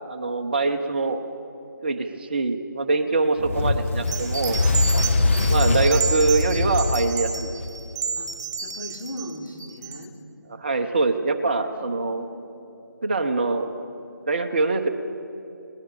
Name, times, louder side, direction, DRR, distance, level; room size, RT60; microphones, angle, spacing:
voice 1, 0.1-1.2 1.8-4.6 5.5-7.5 10.5-12.3 13.0-13.7 14.3-14.9, right 3 dB, 30° right, 6 dB, 1.0 m, -24 dB
voice 2, 3.4-3.7 5.4-5.9 8.2-8.3 8.6-10.2 11.7-12.3, left 1 dB, 70° left, 1 dB, 3.6 m, -39 dB
Fire, 3.4-8.0, left 3 dB, 40° left, 1.3 m, -23 dB
sound 1, 4.1-10.0, right 5 dB, 50° right, 2.6 m, -31 dB
22.0 x 19.0 x 6.9 m, 2.9 s
figure-of-eight pair, 155°, 11 cm